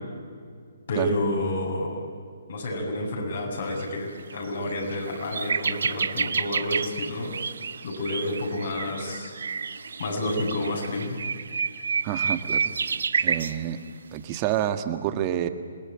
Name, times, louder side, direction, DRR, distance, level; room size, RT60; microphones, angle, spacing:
voice 1, 0.9-2.1 2.5-7.3 7.8-9.3 10.0-11.2, left 1 dB, 60° left, 0 dB, 7.6 m, -29 dB
sound 1, 3.7-3.8 4.3-4.4 4.7-13.6 14.3-14.5, right 5 dB, 70° right, 0.9 m, -29 dB
voice 2, 12.0-12.7 13.2-13.8 14.1-15.5, right 11 dB, 30° right, 9 dB, 1.7 m, -28 dB
27.5 x 20.0 x 8.9 m, 2.2 s
figure-of-eight pair, 140°, 0 cm